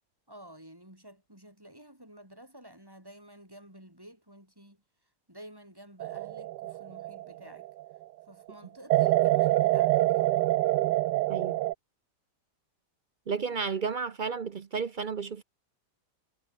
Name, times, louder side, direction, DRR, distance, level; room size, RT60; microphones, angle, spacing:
voice 1, 0.3-4.8 5.3-7.7 8.2-10.5, right 1 dB, 10° right, 6.7 m, -51 dB
sound 1, 6.0-7.8 8.9-11.7, right 16 dB, 90° right, 1.2 m, -26 dB
voice 2, 13.3-15.4, right 5 dB, 55° right, 0.5 m, -32 dB
omnidirectional pair, 1.8 m